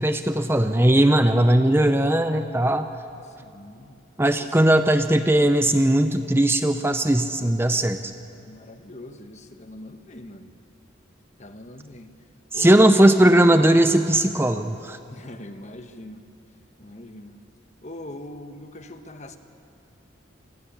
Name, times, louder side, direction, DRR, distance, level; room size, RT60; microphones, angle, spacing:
voice 1, 0.0-2.9 4.2-8.1 12.5-15.0, right 1 dB, 10° right, 8 dB, 0.7 m, -18 dB
voice 2, 3.3-4.0 4.4-4.8 8.4-10.5 11.4-12.1 12.5-12.9 15.1-16.2 16.8-17.4 17.8-19.4, left 1 dB, 35° left, 8 dB, 1.3 m, -42 dB
28.0 x 20.5 x 8.7 m, 2.5 s
head